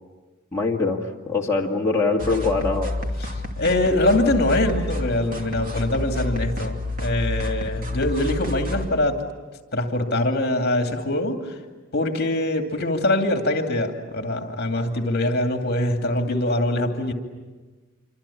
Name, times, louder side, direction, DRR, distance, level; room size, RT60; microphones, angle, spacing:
voice 1, 0.5-2.9, left 3 dB, 15° left, -3 dB, 2.3 m, -23 dB
sound 1, 2.2-8.9, left 1 dB, 40° right, 2.9 m, -29 dB
voice 2, 3.2-9.2 9.7-11.6 11.9-17.1, left 1 dB, 50° left, 4 dB, 2.5 m, -23 dB
27.5 x 25.0 x 8.6 m, 1.3 s
head